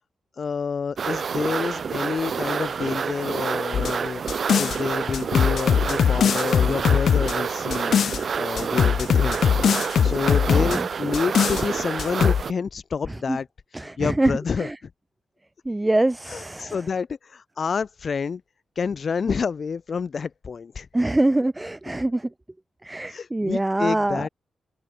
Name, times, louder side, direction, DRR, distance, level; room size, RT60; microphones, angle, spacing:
voice 1, 0.4-9.4 10.0-13.5 13.8-14.7 16.2-18.4 18.8-20.9 23.1-24.3, left 5 dB, 45° left, 4.3 m, -28 dB
sound 1, 1.0-12.5, right 6 dB, 50° right, 1.9 m, -28 dB
sound 2, 3.7-4.8 5.1-8.2 8.6-10.8 11.1-11.6 12.0-12.4, left 8 dB, 65° left, 2.3 m, -21 dB
voice 2, 10.5-10.8 13.3-13.4 13.7-14.3 14.6-14.7 15.7-16.7 20.9-22.2 22.8-24.3, right 1 dB, 10° right, 3.0 m, -24 dB
wide cardioid pair, 130°, 0 cm